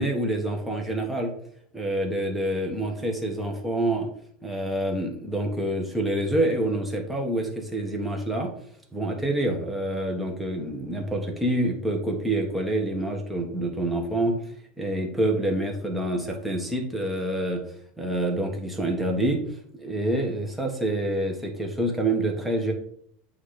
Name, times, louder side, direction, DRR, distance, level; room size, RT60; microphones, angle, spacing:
voice 1, 0.0-1.3 1.7-4.1 4.4-8.5 8.9-14.5 14.8-17.6 18.0-19.4 19.7-22.7, right 1 dB, ahead, 0 dB, 1.2 m, -27 dB
8.3 x 2.8 x 4.9 m, 0.65 s
supercardioid pair, 150°, 4 cm